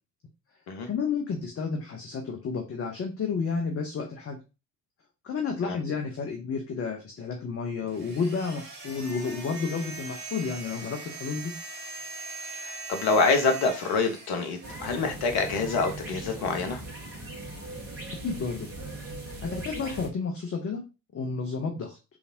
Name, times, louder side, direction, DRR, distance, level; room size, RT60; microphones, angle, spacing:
voice 1, 0.9-4.4 5.2-11.5 18.2-18.7 19.4-20.8 21.1-22.0, left 5 dB, 30° left, 2 dB, 0.9 m, -31 dB
sound 1, 7.9-15.3, right 3 dB, 75° right, 1.2 m, -41 dB
voice 2, 12.6-16.8, left 4 dB, 50° left, 5 dB, 1.2 m, -26 dB
sound 2, 14.6-20.1, right 2 dB, 30° right, 2.0 m, -39 dB
4.7 x 3.3 x 2.7 m, 0.28 s
figure-of-eight pair, 55°, 46 cm